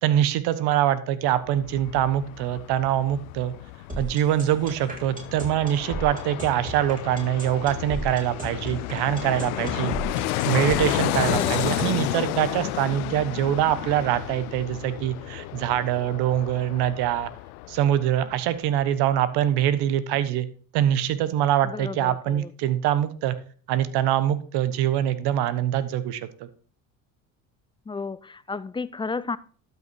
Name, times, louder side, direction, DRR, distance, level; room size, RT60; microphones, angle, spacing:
voice 1, 0.0-3.5 4.0-9.9 10.4-17.3 17.7-20.5 20.7-23.3 23.7-26.3, right 11 dB, 65° right, 1.1 m, -24 dB
Fixed-wing aircraft airplane, 1.4-18.3 18.6-18.7, left 18 dB, 85° left, 0.6 m, -32 dB
sound 1, 3.9-11.9, right 1 dB, 20° right, 4.2 m, -35 dB
voice 2, 11.3-11.8 21.6-22.5 27.9-29.4, left 4 dB, 10° left, 0.4 m, -33 dB
12.0 x 5.7 x 4.5 m
hypercardioid pair, 75°, 42 cm